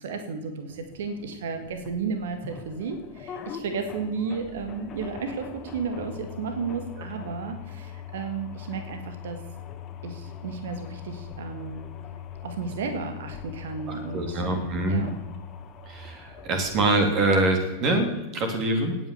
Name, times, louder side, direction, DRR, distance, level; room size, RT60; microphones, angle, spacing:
voice 1, 0.0-9.4 10.0-11.8 12.4-15.2, right 5 dB, 60° right, 8 dB, 2.1 m, -33 dB
sound 1, 0.7-17.1, left 8 dB, 30° left, 1.9 m, -41 dB
voice 2, 13.9-15.0 15.9-19.0, right 2 dB, 35° right, 5 dB, 3.1 m, -24 dB
17.5 x 9.4 x 7.0 m, 1.1 s
figure-of-eight pair, 90°, 0 cm